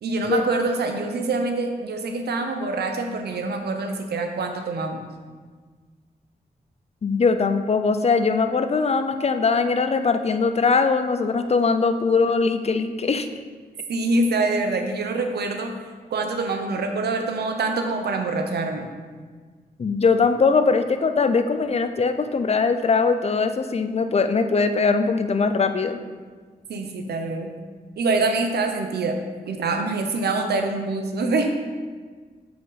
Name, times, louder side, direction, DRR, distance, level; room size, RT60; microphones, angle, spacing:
voice 1, 0.0-5.0 13.9-15.7 16.1-18.9 26.7-27.5 28.0-29.2 29.5-31.5, right 3 dB, 85° right, 5 dB, 0.8 m, -25 dB
voice 2, 7.0-13.3 19.8-26.0, left 4 dB, 40° left, 9 dB, 0.5 m, -21 dB
8.0 x 4.9 x 4.1 m, 1.5 s
cardioid pair, 70°, 16 cm